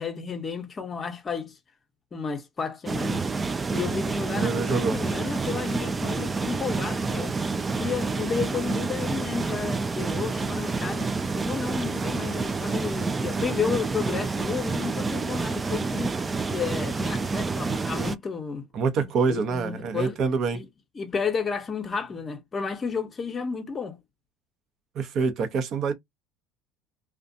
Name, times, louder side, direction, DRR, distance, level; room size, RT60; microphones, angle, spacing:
voice 1, 0.0-1.6 2.1-3.3 3.7-7.4 7.8-11.1 11.4-16.1 16.5-18.7 18.9-20.2 20.5-20.7 21.0-24.0, left 6 dB, 30° left, 0.7 m, -32 dB
sound 1, 2.9-18.2, right 4 dB, 25° right, 0.3 m, -28 dB
voice 2, 4.3-5.0 18.7-20.6 24.9-25.9, right 5 dB, 55° right, 0.6 m, -26 dB
2.4 x 2.2 x 2.6 m
hypercardioid pair, 80°, 0 cm